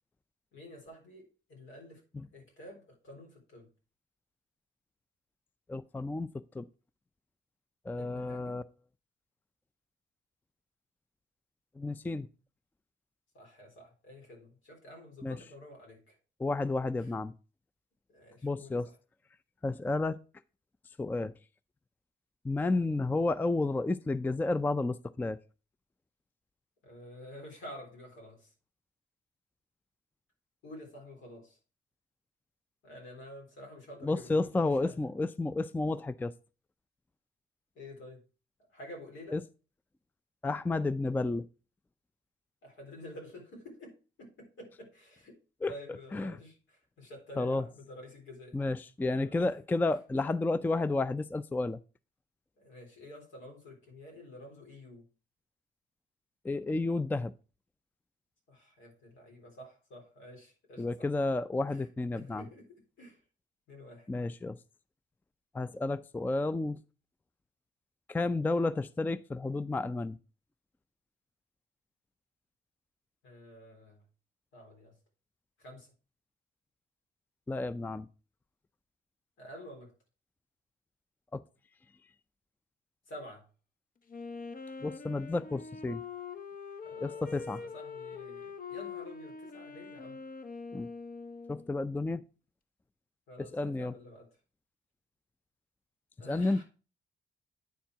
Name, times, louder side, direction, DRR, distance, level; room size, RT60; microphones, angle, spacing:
voice 1, 0.5-2.0 2.3-3.7 8.0-8.6 13.3-16.2 17.0-17.1 18.1-19.0 26.8-28.5 30.6-31.6 32.8-35.1 37.8-38.2 38.7-39.4 42.6-45.4 45.7-48.7 49.1-49.5 52.6-55.0 58.5-61.1 61.7-61.9 62.1-63.2 63.7-64.1 73.2-74.0 74.5-75.0 75.6-75.9 79.4-79.9 83.1-83.5 86.8-87.3 87.6-90.2 93.3-94.4 96.2-96.6, left 1 dB, 75° left, 3.8 m, -50 dB
voice 2, 5.7-6.7 7.9-8.6 11.8-12.3 15.2-15.4 16.4-17.3 18.4-18.9 19.6-20.2 21.0-21.3 22.4-25.4 34.0-36.3 39.3-39.4 40.4-41.5 45.6-45.7 46.1-46.3 47.4-47.6 48.5-51.8 56.4-57.3 60.8-62.4 64.1-64.6 65.5-66.8 68.1-70.2 77.5-78.1 81.3-81.4 84.8-86.0 87.0-87.6 90.7-90.9 91.5-92.2 93.4-93.9 96.2-96.6, left 2 dB, 10° left, 0.3 m, -31 dB
Wind instrument woodwind instrument, 84.1-91.8, left 5 dB, 45° left, 0.8 m, -44 dB
9.3 x 4.4 x 4.7 m
cardioid pair, 90°, 20 cm